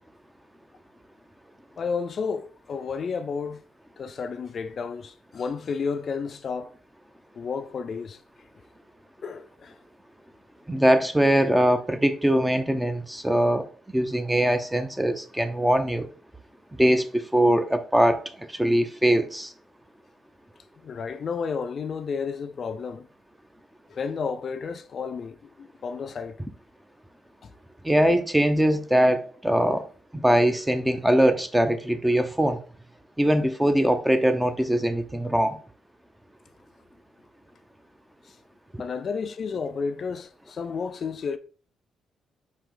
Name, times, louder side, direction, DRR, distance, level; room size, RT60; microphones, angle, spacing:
voice 1, 1.8-3.6 4.0-6.7 7.4-8.2 9.2-9.8 20.8-23.1 23.9-26.4 27.4-27.5 38.3-38.4 38.8-41.4, left 5 dB, 50° left, 0.3 m, -32 dB
voice 2, 10.7-13.6 13.9-16.1 16.8-19.5 27.8-29.9 30.1-32.6 33.2-35.6, right 1 dB, 10° right, 0.5 m, -22 dB
4.5 x 2.8 x 3.7 m
cardioid pair, 90°, 0 cm